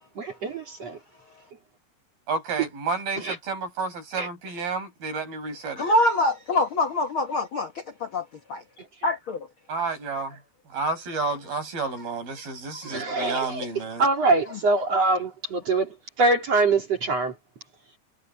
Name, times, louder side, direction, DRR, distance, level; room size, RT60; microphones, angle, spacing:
voice 1, 0.2-1.0 3.2-3.4 4.2-4.3 12.9-13.7 14.0-17.3, right 3 dB, 40° right, 3.9 m, -24 dB
voice 2, 2.3-5.9 9.7-10.4 10.7-14.0, right 4 dB, 60° right, 8.2 m, -30 dB
voice 3, 5.7-8.6 9.0-9.5 12.7-13.2, left 2 dB, 70° left, 1.2 m, -26 dB
omnidirectional pair, 4.9 m